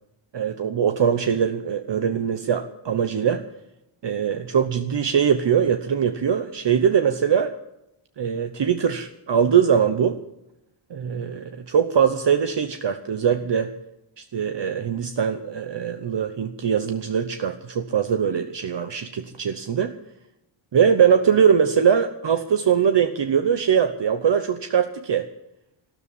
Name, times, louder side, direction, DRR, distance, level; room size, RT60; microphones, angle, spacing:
voice 1, 0.3-3.4 4.0-7.5 8.2-10.2 10.9-13.7 14.2-19.9 20.7-25.3, right 7 dB, 60° right, 7 dB, 1.0 m, -22 dB
14.0 x 13.0 x 7.1 m, 0.84 s
wide cardioid pair, 150°, 50 cm